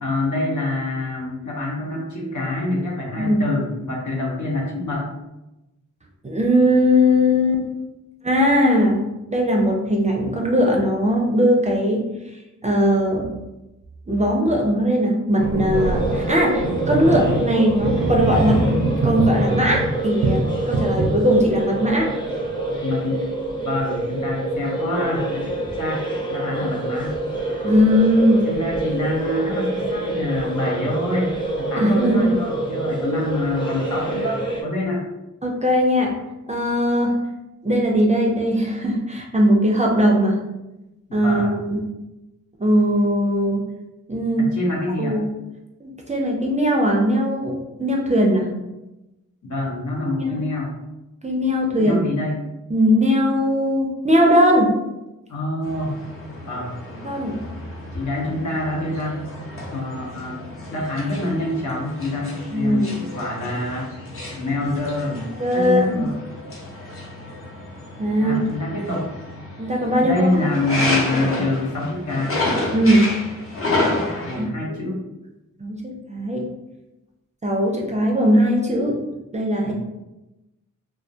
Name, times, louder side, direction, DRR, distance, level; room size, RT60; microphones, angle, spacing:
voice 1, 0.0-5.1 22.8-23.2 23.6-25.5 25.8-26.0 26.3-27.2 28.4-31.3 31.6-35.0 41.1-41.6 44.4-45.2 49.4-50.7 51.8-52.4 55.3-56.0 56.4-56.7 57.9-59.2 59.7-60.4 60.7-63.9 64.4-65.2 65.5-66.2 68.2-69.1 70.0-72.4 74.2-75.0 79.6-79.7, left 2 dB, 70° left, -3 dB, 0.8 m, -26 dB
voice 2, 6.2-7.6 8.2-9.0 9.3-12.0 12.6-13.4 14.1-18.6 19.0-22.1 27.6-28.4 31.7-32.3 35.4-36.1 36.5-37.1 37.6-40.4 41.1-41.8 42.6-43.6 44.1-44.5 45.0-45.3 45.8-48.5 50.2-50.3 51.2-52.0 52.7-54.7 57.0-57.4 62.5-62.9 65.4-66.1 68.0-68.4 69.6-70.3 72.7-73.1 74.4-74.8 75.6-76.4 77.4-79.0 79.3-79.7, equal, 20° right, -1 dB, 0.4 m, -19 dB
sound 1, 15.4-19.9 20.2-21.5, right 2 dB, 80° right, 0.5 m, -23 dB
sound 2, 15.7-34.6, right 2 dB, 15° left, 0.7 m, -27 dB
sound 3, 55.6-74.4, left 2 dB, 45° left, 0.8 m, -30 dB
2.3 x 2.1 x 2.6 m, 0.98 s
cardioid pair, 40°, 32 cm